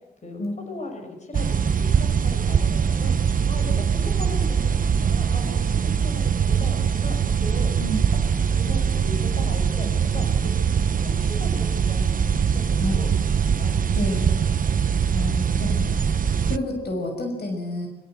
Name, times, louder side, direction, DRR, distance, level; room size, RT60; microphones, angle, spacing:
voice 1, 0.7-3.2 3.5-7.7 8.4-10.5 10.9-13.1 13.6-14.6, left 2 dB, 45° left, 4 dB, 5.8 m, -38 dB
sound 1, 1.3-16.6, right 7 dB, 55° right, 0.9 m, -22 dB
voice 2, 14.0-14.4 15.1-16.0 16.5-17.9, left 1 dB, 80° left, 4 dB, 6.1 m, -29 dB
24.0 x 22.5 x 8.0 m, 1.0 s
wide cardioid pair, 105°, 16 cm